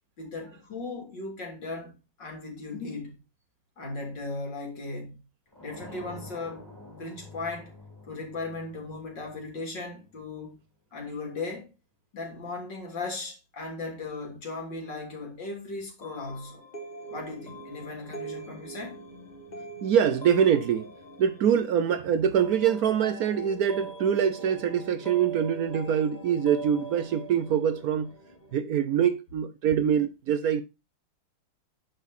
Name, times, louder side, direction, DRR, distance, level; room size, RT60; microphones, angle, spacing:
voice 1, 0.2-3.2 3.8-5.2 5.6-6.7 7.0-7.7 8.1-10.5 10.9-11.7 12.1-16.6 17.1-19.0, left 3 dB, 60° left, 3.9 m, -37 dB
sound 1, 5.5-10.2, left 2 dB, 10° left, 3.1 m, -48 dB
sound 2, 16.0-28.6, right 3 dB, 25° left, 1.3 m, -42 dB
voice 2, 19.8-20.9 21.2-28.1 28.5-30.6, right 8 dB, 70° right, 0.9 m, -24 dB
10.0 x 6.7 x 4.2 m
omnidirectional pair, 2.3 m